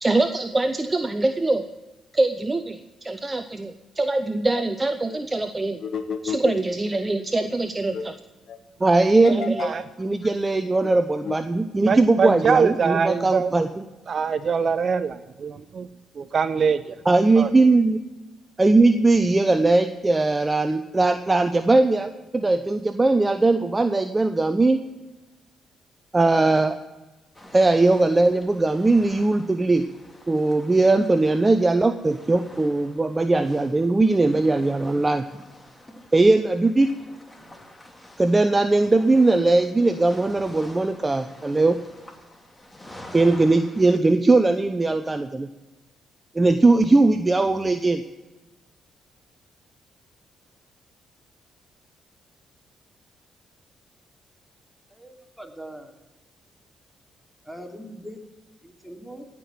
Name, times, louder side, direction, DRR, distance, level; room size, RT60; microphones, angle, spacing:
voice 1, 0.0-1.6 2.1-5.8 6.2-8.1 8.8-9.7 10.0-13.8 17.0-18.0 18.6-24.8 26.1-26.8 27.5-29.8 30.3-35.2 36.1-36.9 38.2-41.8 43.1-45.5 46.3-48.0, right 2 dB, 25° right, 9 dB, 0.9 m, -20 dB
sound 1, 4.1-4.2 4.5-4.7 5.1-5.2 5.8-7.2 7.5-7.6 7.9-8.1 8.5-8.6 9.1-9.8 10.2-10.3 10.8-10.9 11.2-11.4, left 6 dB, 55° left, 1.3 m, -32 dB
voice 2, 11.8-13.5 14.1-15.9 16.2-17.0 17.4-17.5, right 6 dB, 50° right, 12 dB, 0.6 m, -23 dB
sound 2, 27.3-44.0, left 1 dB, 15° left, 2.5 m, -47 dB
voice 3, 54.9-55.9 57.4-58.2 58.6-59.3, equal, ahead, 3 dB, 2.9 m, -41 dB
17.0 x 6.2 x 8.7 m, 1.1 s
hypercardioid pair, 45°, 0 cm